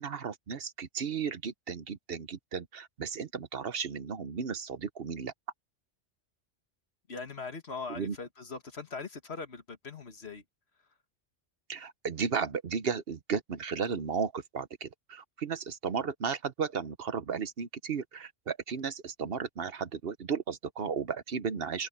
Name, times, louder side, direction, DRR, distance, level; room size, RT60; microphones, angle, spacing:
voice 1, 0.0-5.3 8.0-8.1 11.7-21.9, right 6 dB, 60° right, 1.1 m, -34 dB
voice 2, 7.1-10.4, left 4 dB, 70° left, 2.1 m, -41 dB
open air
omnidirectional pair, 1.1 m